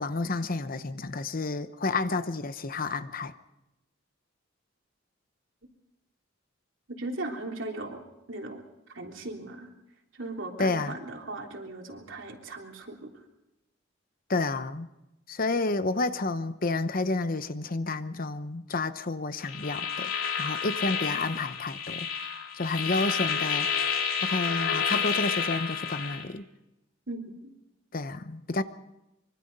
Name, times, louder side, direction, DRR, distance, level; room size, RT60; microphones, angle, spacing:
voice 1, 0.0-3.3 10.6-11.0 14.3-14.9 15.3-20.1 20.4-22.1 22.5-26.4 27.9-28.6, left 3 dB, 45° left, 0.9 m, -30 dB
voice 2, 7.0-8.0 8.3-8.6 8.9-9.7 10.1-13.1 27.1-27.4, right 2 dB, 70° right, 3.4 m, -37 dB
sound 1, 19.5-26.2, left 7 dB, 80° left, 3.0 m, -30 dB
24.5 x 23.5 x 5.4 m
head